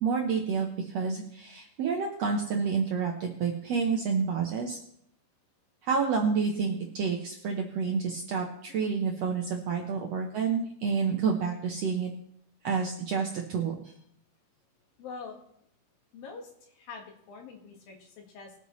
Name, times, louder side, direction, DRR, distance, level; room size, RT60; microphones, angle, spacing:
voice 1, 0.0-4.8 5.8-12.1 12.6-13.7, right 5 dB, 70° right, 1 dB, 1.6 m, -29 dB
voice 2, 15.0-15.4 16.1-18.5, left 4 dB, 75° left, 2 dB, 3.4 m, -44 dB
21.0 x 8.3 x 3.2 m, 0.70 s
omnidirectional pair, 4.2 m